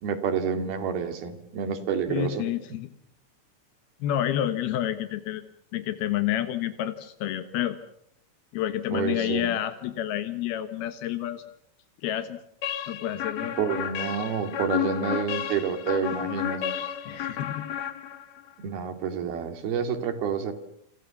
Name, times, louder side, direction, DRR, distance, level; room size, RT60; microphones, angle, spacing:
voice 1, 0.0-2.5 8.9-9.6 13.6-16.7 18.6-20.5, right 7 dB, 80° right, 9 dB, 4.4 m, -29 dB
voice 2, 2.1-2.9 4.0-5.4 5.7-7.8 8.5-11.4 12.0-12.4 12.9-13.6 17.1-17.7, left 12 dB, 85° left, 10 dB, 3.2 m, -29 dB
sound 1, 12.6-18.5, left 9 dB, 55° left, 2.3 m, -32 dB
29.0 x 27.0 x 7.1 m, 0.70 s
omnidirectional pair, 4.3 m